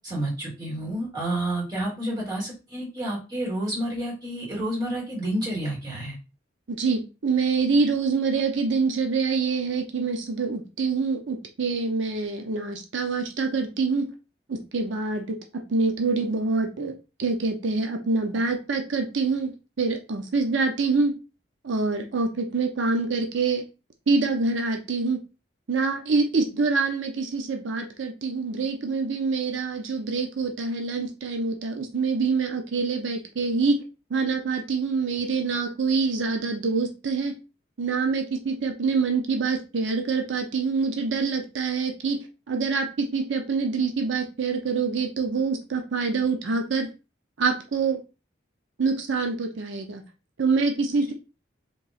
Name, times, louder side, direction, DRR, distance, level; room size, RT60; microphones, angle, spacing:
voice 1, 0.0-6.2, right 1 dB, 20° right, -5 dB, 1.8 m, -29 dB
voice 2, 6.7-14.1 14.5-19.5 19.8-21.2 21.6-23.7 24.1-25.2 25.7-33.8 34.1-37.4 37.8-46.9 47.4-48.0 48.8-50.0 50.4-51.1, right 4 dB, 75° right, 4 dB, 0.6 m, -25 dB
3.8 x 2.8 x 4.0 m, 0.31 s
head